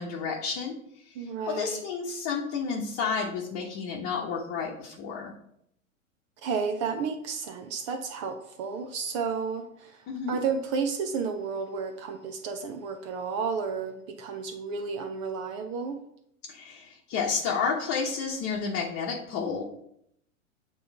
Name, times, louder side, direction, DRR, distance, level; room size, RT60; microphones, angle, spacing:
voice 1, 0.0-5.3 10.1-10.4 16.5-19.6, left 5 dB, 35° left, -2 dB, 1.0 m, -31 dB
voice 2, 1.1-1.8 6.4-16.0, right 5 dB, 25° right, 6 dB, 0.3 m, -32 dB
7.8 x 3.2 x 4.7 m, 0.75 s
hypercardioid pair, 115°, 41 cm